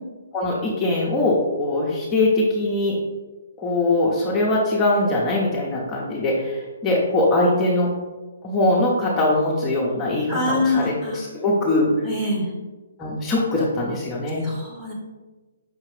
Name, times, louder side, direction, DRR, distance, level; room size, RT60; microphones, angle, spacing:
voice 1, 0.3-3.0 3.6-7.9 8.4-12.1 13.0-14.4, left 2 dB, 15° left, -5 dB, 0.6 m, -22 dB
voice 2, 10.3-11.2 12.0-12.5 14.4-14.9, left 2 dB, 15° right, -4 dB, 1.0 m, -24 dB
5.4 x 2.4 x 3.2 m, 1.2 s
hypercardioid pair, 140°, 0 cm